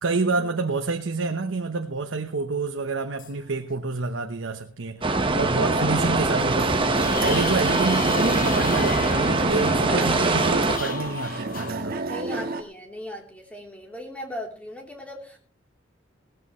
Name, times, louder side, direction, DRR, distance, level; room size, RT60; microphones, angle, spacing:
voice 1, 0.0-5.1 5.3-6.7 7.2-12.0, right 3 dB, 90° right, 1.0 m, -28 dB
sound 1, 3.2-3.3 5.8-5.9 6.4-11.7, left 7 dB, 45° left, 1.1 m, -36 dB
sound 2, 5.0-10.8, right 2 dB, 25° right, 1.3 m, -23 dB
sound 3, 5.6-12.6, right 3 dB, 50° right, 1.5 m, -31 dB
voice 2, 9.8-10.6 12.1-15.4, left 1 dB, 5° left, 3.4 m, -37 dB
18.0 x 14.0 x 3.2 m
head